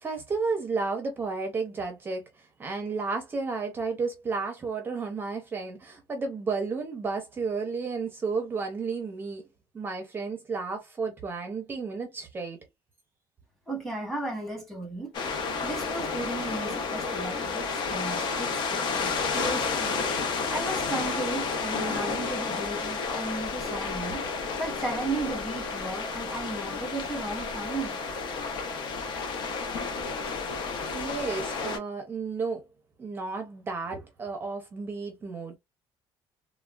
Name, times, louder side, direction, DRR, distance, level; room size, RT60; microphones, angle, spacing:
voice 1, 0.0-9.4 9.7-12.6 30.9-32.6 33.0-35.6, right 4 dB, 20° right, 0.5 m, -32 dB
voice 2, 13.7-20.1 20.5-24.2 24.6-28.0, right 2 dB, ahead, 1.1 m, -35 dB
sound 1, 15.1-31.8, left 4 dB, 50° left, 0.7 m, -31 dB
3.4 x 2.1 x 2.3 m
cardioid pair, 175°, 10 cm